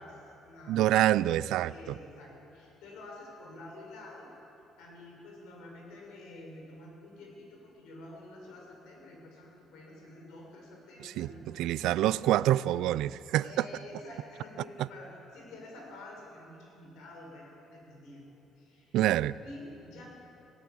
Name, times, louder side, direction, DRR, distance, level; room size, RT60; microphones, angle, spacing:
voice 1, 0.0-0.8 1.6-4.3 4.8-12.3 13.4-18.2 18.6-19.0 19.4-20.1, left 1 dB, 80° left, 0 dB, 6.2 m, -49 dB
voice 2, 0.7-1.7 11.0-13.5 18.9-19.4, right 14 dB, 75° right, 19 dB, 0.4 m, -26 dB
19.0 x 17.5 x 8.7 m, 3.0 s
cardioid pair, 175°, 0 cm